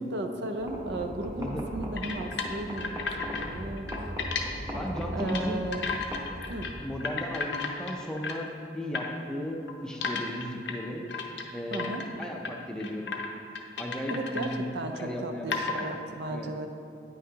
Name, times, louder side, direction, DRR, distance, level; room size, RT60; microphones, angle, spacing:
voice 1, 0.0-3.9 5.1-5.7 6.5-6.7 11.7-12.0 14.1-16.7, right 2 dB, 70° right, 5 dB, 0.5 m, -35 dB
sound 1, 0.6-6.9, equal, 15° right, 0.8 m, -38 dB
sound 2, 2.0-3.5 3.8-4.4 5.0-5.5 5.7-6.7 7.0-8.5 8.9-9.1 9.7-12.5 12.8-13.3 13.6-14.6 15.0-15.1 15.5-15.9, left 5 dB, 85° left, 0.6 m, -33 dB
voice 2, 4.7-5.6 6.8-11.1 11.5-13.1 13.8-14.6 14.9-15.9 16.3-16.5, equal, 5° left, 0 dB, 0.4 m, -35 dB
9.1 x 5.6 x 2.8 m, 2.5 s
head